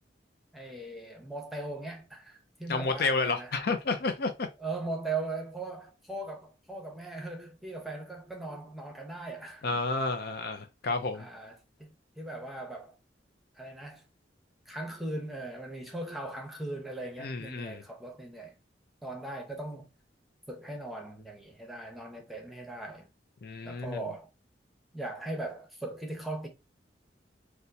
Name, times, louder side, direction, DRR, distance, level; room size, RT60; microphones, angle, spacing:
voice 1, 0.5-3.5 4.6-9.7 11.1-12.9 13.6-14.1 14.7-18.5 19.0-19.9 20.5-23.1 23.6-24.3 24.9-26.5, right 2 dB, ahead, 0.7 m, -39 dB
voice 2, 2.7-4.5 9.6-11.3 17.2-17.8 23.4-24.0, left 3 dB, 60° left, 0.5 m, -31 dB
4.2 x 2.1 x 2.7 m
head